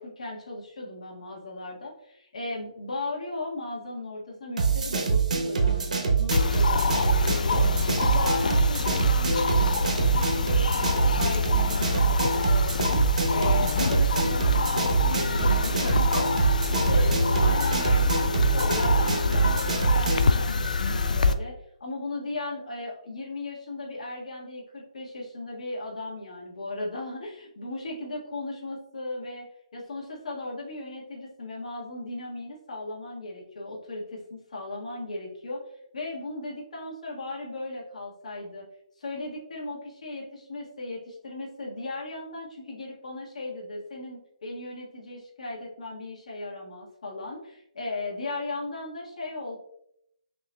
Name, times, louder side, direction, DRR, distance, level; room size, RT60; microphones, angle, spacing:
voice 1, 0.0-16.4 16.7-29.5 29.7-35.6 35.9-38.7 39.0-49.6, left 2 dB, 65° left, -3 dB, 1.5 m, -37 dB
sound 1, 4.6-20.3, right 6 dB, 75° right, 0.9 m, -25 dB
sound 2, 6.3-21.3, left 4 dB, 85° left, 0.3 m, -26 dB
5.9 x 2.8 x 2.2 m, 0.75 s
hypercardioid pair, 170°, 4 cm